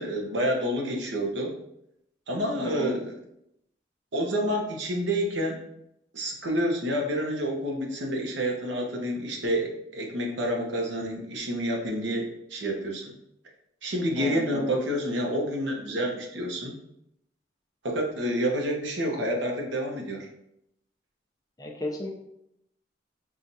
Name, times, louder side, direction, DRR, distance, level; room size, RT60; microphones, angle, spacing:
voice 1, 0.0-1.5 2.3-3.1 4.1-5.6 6.1-13.1 13.8-16.8 17.8-20.3, equal, 90° right, 1 dB, 0.8 m, -28 dB
voice 2, 2.6-3.0 14.2-14.7 21.6-22.1, left 2 dB, 20° left, 0 dB, 0.5 m, -34 dB
5.6 x 2.4 x 2.6 m, 0.79 s
head